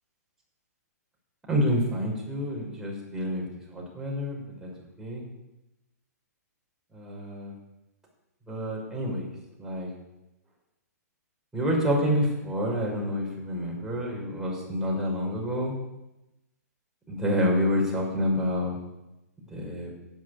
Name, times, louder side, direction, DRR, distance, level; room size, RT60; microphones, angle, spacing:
voice 1, 1.5-3.4 3.7-4.7 5.0-5.2 6.9-7.5 8.5-9.3 9.6-9.9 11.5-15.7 17.1-18.8 19.5-19.9, equal, 5° right, -3 dB, 5.9 m, -28 dB
12.0 x 10.0 x 8.7 m, 0.96 s
hypercardioid pair, 125°, 9 cm